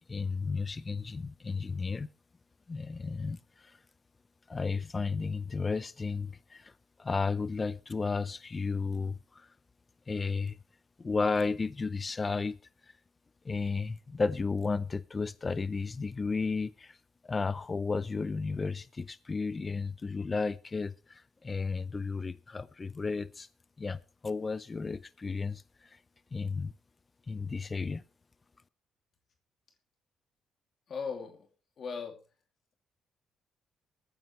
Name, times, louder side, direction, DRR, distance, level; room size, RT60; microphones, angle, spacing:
voice 1, 0.0-2.1 2.7-3.8 4.5-6.7 7.0-9.5 10.1-10.6 11.0-12.6 13.4-17.0 17.2-23.5 23.8-26.0 26.3-26.7 27.3-28.0, left 4 dB, 30° left, 0.6 m, -33 dB
voice 2, 30.9-31.4 31.8-32.2, left 5 dB, 55° left, 2.6 m, -37 dB
22.5 x 9.7 x 3.2 m
cardioid pair, 90°, 0 cm